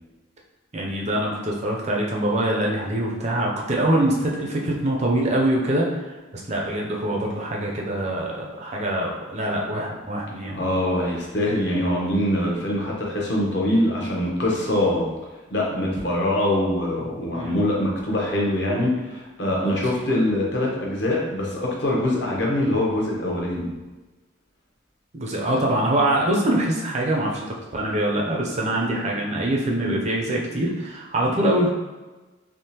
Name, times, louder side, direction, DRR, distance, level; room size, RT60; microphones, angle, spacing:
voice 1, 0.7-10.5 17.3-17.7 25.1-31.7, right 1 dB, 35° right, -1 dB, 0.5 m, -24 dB
voice 2, 10.4-15.0 15.5-23.7, left 1 dB, 55° left, -3 dB, 0.9 m, -23 dB
3.6 x 2.9 x 2.8 m, 1.2 s
head